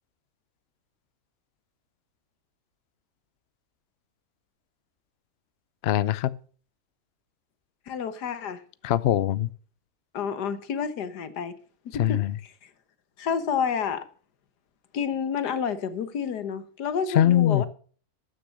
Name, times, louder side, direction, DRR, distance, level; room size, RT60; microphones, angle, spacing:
voice 1, 5.8-6.3 8.8-9.5 12.0-12.3 17.1-17.6, left 12 dB, 60° left, 0.6 m, -22 dB
voice 2, 7.9-8.6 10.1-11.5 11.9-12.2 13.2-14.1 14.9-17.7, left 7 dB, 90° left, 1.7 m, -29 dB
13.0 x 6.7 x 6.2 m
omnidirectional pair, 1.7 m